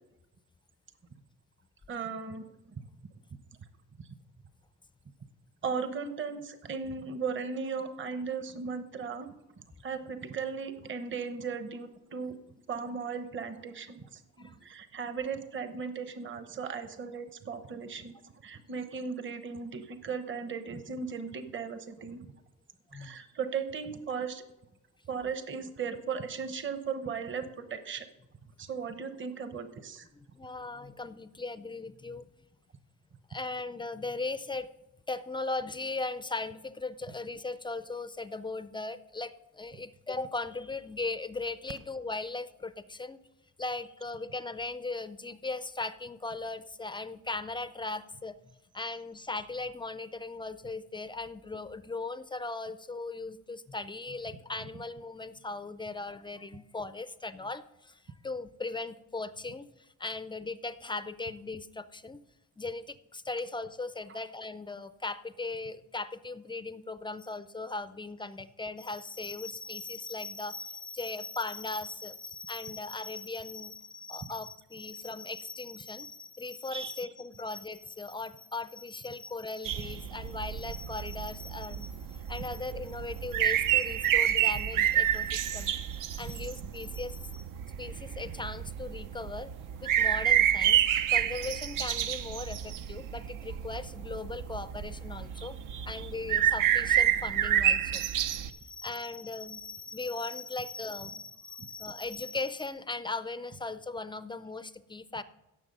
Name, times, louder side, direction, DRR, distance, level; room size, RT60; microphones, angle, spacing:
voice 1, 1.9-2.5 4.0-4.1 5.6-9.3 9.8-12.4 12.7-22.3 22.9-24.4 25.1-28.1 28.6-30.1 64.1-64.2 76.7-76.9 95.3-96.1, right 5 dB, 35° right, 9 dB, 1.0 m, -37 dB
voice 2, 30.3-32.3 33.3-34.7 35.1-43.2 43.6-48.4 48.7-62.2 62.6-85.7 86.1-87.4 87.8-89.5 89.8-90.8 91.1-95.6 95.9-98.0 98.5-105.2, left 3 dB, 15° left, 13 dB, 0.4 m, -38 dB
sound 1, 79.6-98.5, right 10 dB, 80° right, 0.8 m, -29 dB
16.5 x 7.3 x 5.4 m, 0.94 s
cardioid pair, 160°, 32 cm